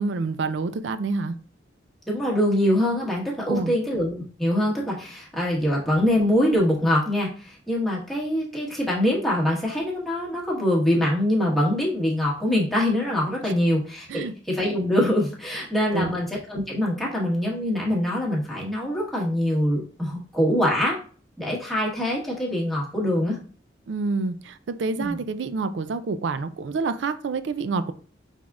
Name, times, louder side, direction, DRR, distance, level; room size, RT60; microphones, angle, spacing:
voice 1, 0.0-1.4 3.5-3.7 13.4-13.5 14.1-14.3 15.9-16.2 23.9-27.9, right 4 dB, 75° right, 0.4 m, -28 dB
voice 2, 2.1-21.0 21.4-23.4 25.0-25.2, left 1 dB, ahead, 1.3 m, -24 dB
5.9 x 3.6 x 2.4 m
head